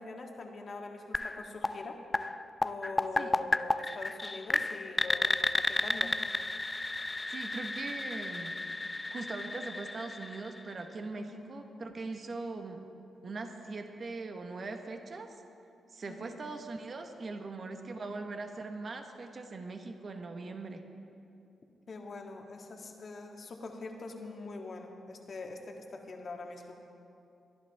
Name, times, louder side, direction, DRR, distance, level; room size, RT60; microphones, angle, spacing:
voice 1, 0.0-2.0 2.6-6.2 11.2-11.4 16.1-16.4 21.9-26.8, left 3 dB, 55° left, 2 dB, 1.7 m, -43 dB
sound 1, 1.1-10.9, left 2 dB, 25° left, 0.5 m, -33 dB
voice 2, 7.3-8.6 9.1-12.8 13.2-15.3 15.9-20.8, right 3 dB, 50° right, 5 dB, 1.3 m, -41 dB
23.0 x 11.0 x 3.5 m, 2.6 s
supercardioid pair, 50°, 0 cm